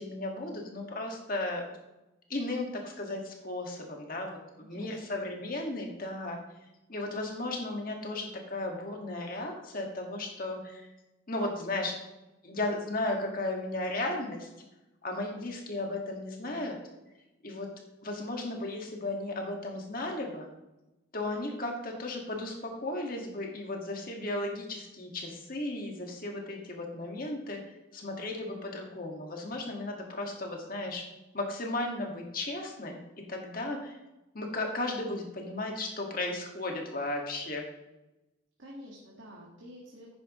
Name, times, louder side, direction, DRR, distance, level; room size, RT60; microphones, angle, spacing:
voice 1, 0.0-1.7 2.3-6.4 6.9-10.9 11.3-12.0 12.4-14.5 15.0-16.8 17.4-17.7 18.0-20.5 21.1-27.6 27.9-31.0 31.3-34.0 34.3-37.6, left 2 dB, 45° left, 1 dB, 1.9 m, -35 dB
voice 2, 4.6-5.0 38.6-40.1, equal, 80° right, -4 dB, 1.9 m, -48 dB
10.5 x 9.7 x 3.1 m, 0.99 s
head